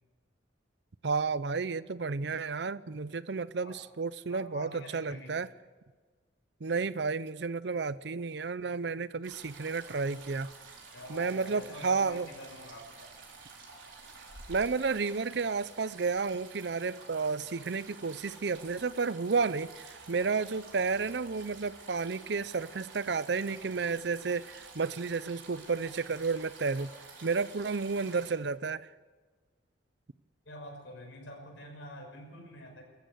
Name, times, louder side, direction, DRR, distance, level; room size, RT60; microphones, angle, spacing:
voice 1, 1.0-5.5 6.6-10.5 11.1-12.3 14.5-26.9 27.2-28.9, right 4 dB, 60° right, 0.6 m, -32 dB
voice 2, 4.3-5.4 10.9-13.1 30.4-32.8, left 1 dB, 90° left, 6.0 m, -46 dB
sound 1, 9.2-28.3, right 4 dB, 90° right, 4.2 m, -51 dB
23.0 x 14.5 x 8.4 m
head